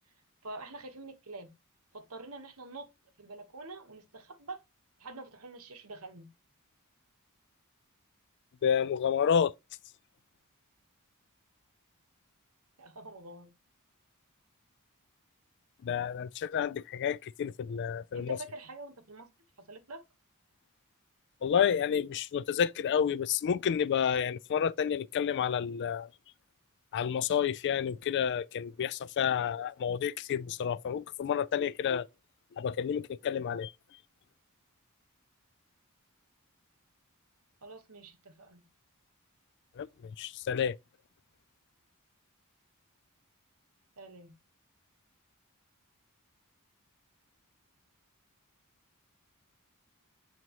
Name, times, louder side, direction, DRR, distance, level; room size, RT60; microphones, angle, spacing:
voice 1, 0.4-1.5 1.9-2.9 3.2-4.6 5.0-6.3 12.8-13.5 18.1-19.3 19.6-20.0 37.6-38.6 44.0-44.3, right 2 dB, 75° right, 1.2 m, -46 dB
voice 2, 8.6-9.5 15.8-18.4 21.4-26.1 26.9-32.1 32.6-33.7 39.8-39.9 40.2-40.8, left 8 dB, 50° left, 0.3 m, -30 dB
7.7 x 4.1 x 2.9 m
head